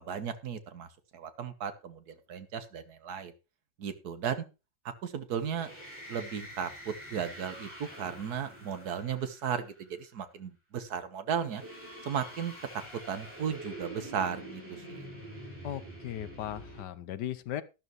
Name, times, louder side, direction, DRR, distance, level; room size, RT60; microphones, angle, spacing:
voice 1, 0.0-3.3 3.8-4.4 5.0-5.7 6.1-11.6 12.0-12.5 13.1-15.1, right 7 dB, 55° right, 1.7 m, -35 dB
sound 1, 5.4-9.8 11.3-16.8, right 1 dB, 5° right, 6.5 m, -46 dB
voice 2, 15.6-17.6, left 11 dB, 70° left, 1.2 m, -37 dB
12.0 x 12.0 x 3.1 m
omnidirectional pair, 2.1 m